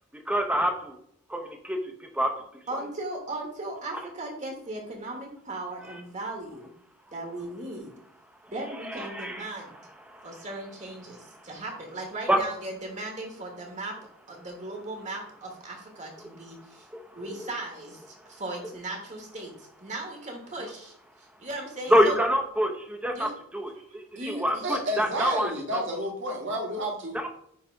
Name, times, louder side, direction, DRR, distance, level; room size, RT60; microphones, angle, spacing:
voice 1, 0.3-1.0 1.3-2.3 2.7-2.8 8.8-9.5 10.1-10.3 12.3-12.4 16.9-17.5 21.9-25.8 27.1-27.3, equal, 5° right, 3 dB, 1.0 m, -27 dB
voice 2, 2.7-6.7 7.1-7.9 8.5-9.8 10.2-14.0 14.3-16.9 17.1-22.2 23.1-23.3 23.7-24.6, right 2 dB, 35° right, 1 dB, 1.5 m, -37 dB
voice 3, 24.6-27.2, equal, 60° right, 0 dB, 1.8 m, -30 dB
9.6 x 3.3 x 4.6 m, 0.68 s
head